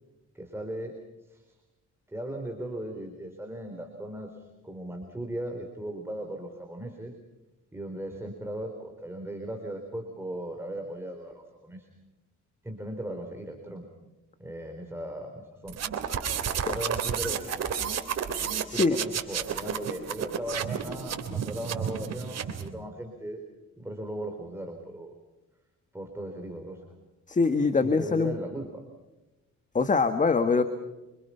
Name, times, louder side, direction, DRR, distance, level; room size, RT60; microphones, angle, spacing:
voice 1, 0.3-1.0 1.2-1.5 2.1-7.1 7.7-11.9 12.6-13.9 14.4-15.8 16.7-17.7 18.7-23.4 23.8-25.1 25.9-26.8 27.8-28.8, right 1 dB, 10° right, 3 dB, 4.0 m, -37 dB
sound 1, 15.7-22.7, right 8 dB, 60° right, 3.4 m, -31 dB
voice 2, 27.3-28.3 29.7-30.6, left 4 dB, 25° left, 9 dB, 1.6 m, -23 dB
28.0 x 26.0 x 5.8 m, 1.1 s
cardioid pair, 115°, 30 cm